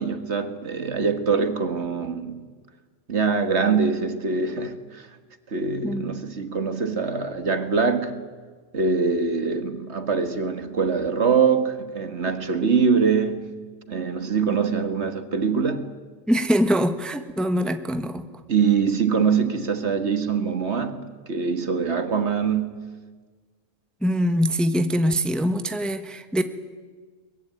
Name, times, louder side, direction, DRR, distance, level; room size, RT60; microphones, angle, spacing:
voice 1, 0.0-2.4 3.1-5.1 5.5-8.2 8.7-13.5 13.9-15.9 18.5-22.9, right 5 dB, 55° right, 1.8 m, -23 dB
voice 2, 16.3-18.3 24.0-26.4, equal, ahead, 1.2 m, -23 dB
23.0 x 21.5 x 9.2 m
omnidirectional pair, 1.4 m